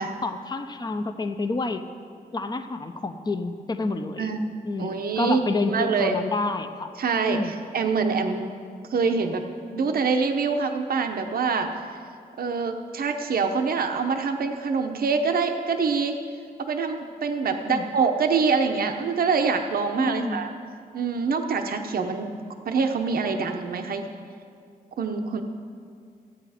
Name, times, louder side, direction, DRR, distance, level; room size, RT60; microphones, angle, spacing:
voice 1, 0.2-1.8 2.3-4.3 4.6-6.9 7.3-7.6 17.5-17.9 20.0-20.4, left 3 dB, 25° left, 8 dB, 0.6 m, -29 dB
voice 2, 4.8-6.2 7.0-8.5 8.9-9.4 9.7-11.7 12.4-16.2 16.6-20.5 20.9-22.3 22.6-24.1 25.0-25.4, right 5 dB, 75° right, 5 dB, 0.8 m, -25 dB
15.0 x 9.1 x 5.0 m, 2.2 s
wide cardioid pair, 115°, 15 cm